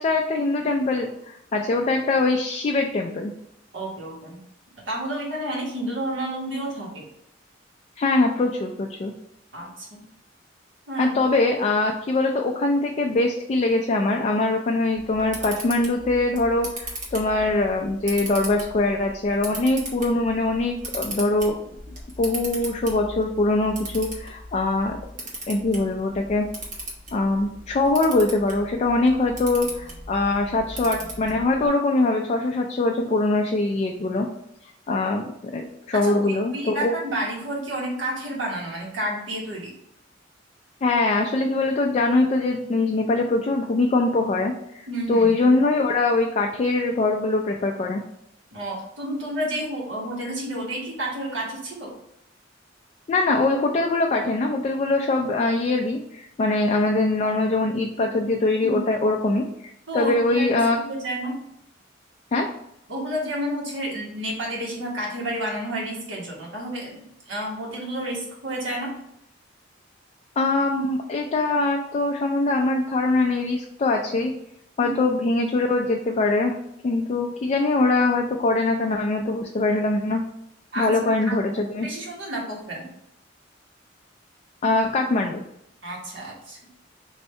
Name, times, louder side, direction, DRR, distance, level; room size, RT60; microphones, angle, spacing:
voice 1, 0.0-3.3 8.0-9.1 11.0-21.6 22.2-25.0 25.5-26.5 27.1-34.3 34.9-35.2 35.5-36.9 40.8-48.0 53.1-60.8 62.3-62.5 70.4-74.3 74.8-76.5 76.8-80.2 80.8-81.9 84.6-85.4, left 2 dB, 35° left, 2 dB, 0.3 m, -22 dB
voice 2, 3.7-4.4 4.9-7.1 9.5-10.0 10.9-11.1 35.9-39.7 44.9-45.3 48.5-51.9 58.6-58.9 59.9-61.3 62.9-68.9 74.8-75.2 80.7-81.5 81.8-82.9 85.8-86.6, right 1 dB, 85° right, -3 dB, 1.4 m, -30 dB
Camera, 15.0-31.7, right 1 dB, 40° right, 1.0 m, -38 dB
3.2 x 2.7 x 4.3 m, 0.78 s
head